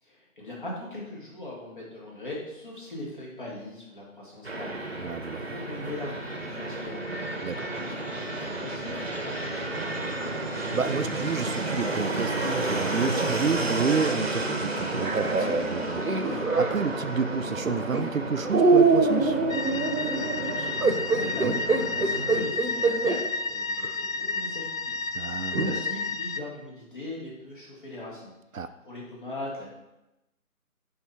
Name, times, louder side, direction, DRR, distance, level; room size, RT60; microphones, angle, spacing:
voice 1, 0.0-7.3 7.6-9.9 20.2-29.7, left 1 dB, 35° left, -4 dB, 2.0 m, -40 dB
Fixed-wing aircraft airplane, 4.4-22.5, right 2 dB, 45° right, 0.9 m, -32 dB
voice 2, 5.0-5.4 7.4-7.7 10.7-19.4 21.4-21.6 25.1-25.7 28.5-28.7, right 5 dB, 65° right, 11 dB, 0.5 m, -30 dB
sound 1, 14.9-16.8 17.6-18.0 18.5-23.2 23.8-23.9 25.5-25.8, right 4 dB, 85° right, 1.0 m, -24 dB
sound 2, 19.5-26.4, left 3 dB, 65° left, 0.6 m, -31 dB
10.5 x 4.4 x 3.4 m, 0.96 s
figure-of-eight pair, 160°, 43 cm